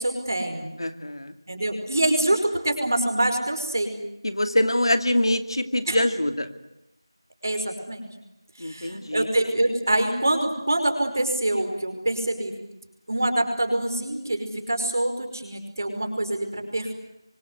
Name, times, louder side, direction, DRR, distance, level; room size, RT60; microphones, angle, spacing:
voice 1, 0.0-0.7 1.5-3.9 5.9-6.0 7.4-8.1 8.6-12.5 13.1-17.0, right 1 dB, 40° right, 6 dB, 5.2 m, -25 dB
voice 2, 0.8-1.3 4.2-6.5 8.6-9.3, left 1 dB, 70° left, 9 dB, 2.5 m, -24 dB
28.5 x 24.5 x 8.3 m, 0.88 s
figure-of-eight pair, 180°, 3 cm